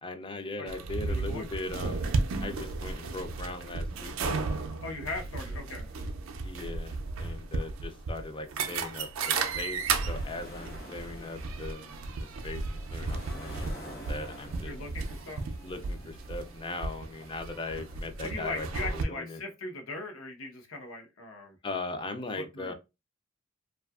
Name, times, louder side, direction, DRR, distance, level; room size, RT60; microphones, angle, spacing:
voice 1, 0.0-4.5 6.4-11.9 12.4-12.6 12.9-14.7 15.6-18.7 19.1-19.4 21.6-22.7, left 2 dB, 25° left, 0.3 m, -39 dB
sound 1, 0.7-19.0, right 4 dB, 75° right, 0.4 m, -34 dB
voice 2, 1.1-1.7 4.8-5.9 14.6-15.4 18.2-21.6 22.3-22.7, left 2 dB, 80° left, 0.8 m, -39 dB
sound 2, 9.3-18.5, equal, 50° left, 0.9 m, -49 dB
2.7 x 2.3 x 2.3 m
head